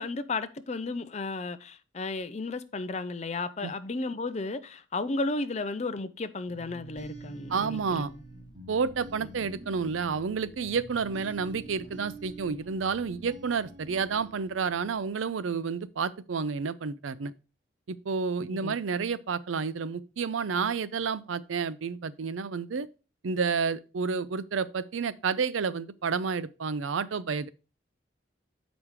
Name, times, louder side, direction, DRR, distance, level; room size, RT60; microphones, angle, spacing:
voice 1, 0.0-8.1 18.5-18.8, left 3 dB, 35° left, 0.5 m, -33 dB
sound 1, 6.5-15.2, right 2 dB, 25° right, 2.7 m, -47 dB
voice 2, 7.5-8.1 8.7-17.3 17.9-22.9 23.2-27.5, right 5 dB, 90° right, 0.5 m, -30 dB
7.2 x 5.1 x 4.7 m
head